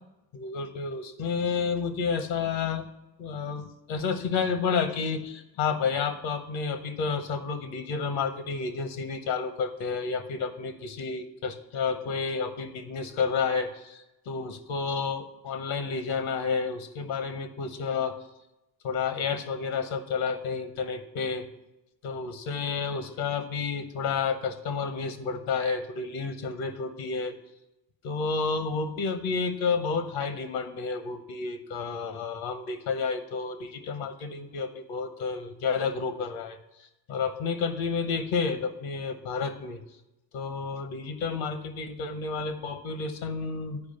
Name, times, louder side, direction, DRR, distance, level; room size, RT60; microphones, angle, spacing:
voice 1, 0.3-2.9 3.2-18.2 18.8-21.5 22.0-27.3 28.0-39.8 40.3-43.8, left 5 dB, 70° left, 10 dB, 1.2 m, -30 dB
8.6 x 4.9 x 6.6 m, 0.91 s
hypercardioid pair, 50°, 49 cm